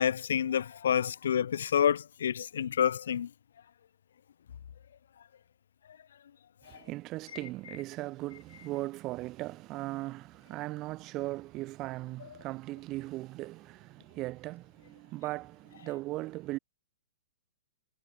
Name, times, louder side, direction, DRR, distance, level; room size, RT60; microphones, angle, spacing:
voice 1, 0.0-3.3, left 8 dB, 75° left, 1.2 m, -28 dB
voice 2, 6.7-16.6, right 18 dB, 30° right, 4.4 m, -38 dB
hypercardioid pair, 145°, 0 cm